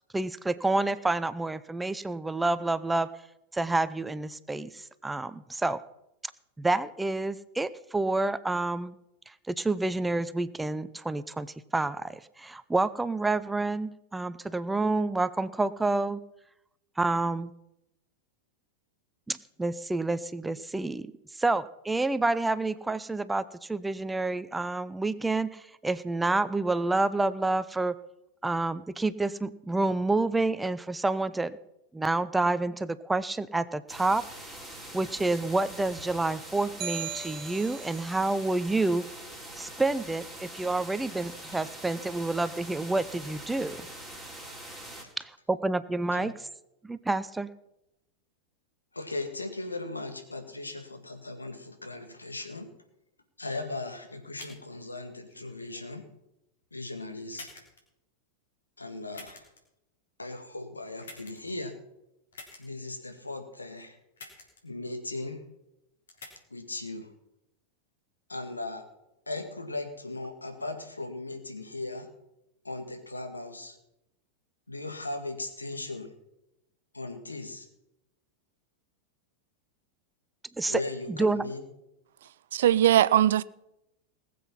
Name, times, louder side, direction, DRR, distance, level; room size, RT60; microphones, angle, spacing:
voice 1, 0.1-3.1 3.5-5.8 6.6-9.0 9.5-16.2 17.0-17.5 19.3-28.0 28.4-31.6 31.9-34.2 34.9-39.1 39.6-43.9 45.2-46.3 46.8-47.5 80.6-80.8 81.1-81.4, right 2 dB, 10° right, 0.5 m, -28 dB
sound 1, 33.9-45.0, right 1 dB, 10° left, 3.4 m, -44 dB
sound 2, 36.8-38.2, right 7 dB, 30° right, 1.2 m, -38 dB
voice 2, 48.9-52.7 53.4-56.0 56.7-57.5 58.8-59.5 60.2-61.7 62.6-64.0 64.6-65.4 66.5-67.1 68.3-68.8 69.3-72.1 72.6-73.8 74.7-76.1 76.9-77.7 80.7-81.6, left 2 dB, 80° left, 1.9 m, -38 dB
sound 3, 54.4-54.6 55.3-55.9 56.6-56.7 57.3-57.8 59.1-59.6 61.0-61.5 62.3-62.6 64.2-64.6 64.9-65.0 66.1-66.3, left 3 dB, 65° left, 3.6 m, -47 dB
voice 3, 82.5-83.4, right 11 dB, 60° right, 0.4 m, -20 dB
19.5 x 7.7 x 5.8 m
figure-of-eight pair, 90°, 0 cm